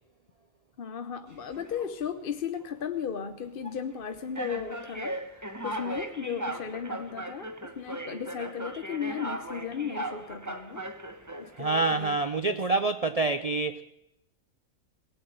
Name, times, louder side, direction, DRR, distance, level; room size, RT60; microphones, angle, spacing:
voice 1, 0.8-10.8 11.4-12.2 12.5-12.6, left 7 dB, 45° left, 0.8 m, -35 dB
sound 1, 1.3-1.9 2.6-2.8 3.6-3.8 4.4-11.6, right 1 dB, 15° right, 0.9 m, -38 dB
voice 2, 11.6-13.8, right 3 dB, 65° right, 0.3 m, -26 dB
18.0 x 8.6 x 7.6 m
omnidirectional pair, 1.5 m